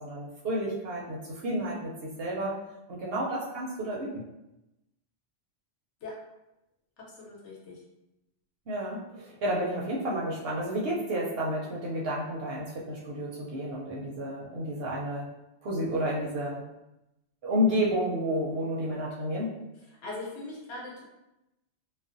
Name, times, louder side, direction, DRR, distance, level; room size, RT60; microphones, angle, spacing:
voice 1, 0.0-2.5 2.9-4.2 8.7-15.3 15.6-16.6 17.4-19.5, equal, 65° right, -4 dB, 0.7 m, -31 dB
voice 2, 7.0-7.8 19.7-21.0, left 2 dB, 70° left, -3 dB, 1.0 m, -41 dB
2.4 x 2.0 x 2.5 m, 0.92 s
omnidirectional pair, 1.2 m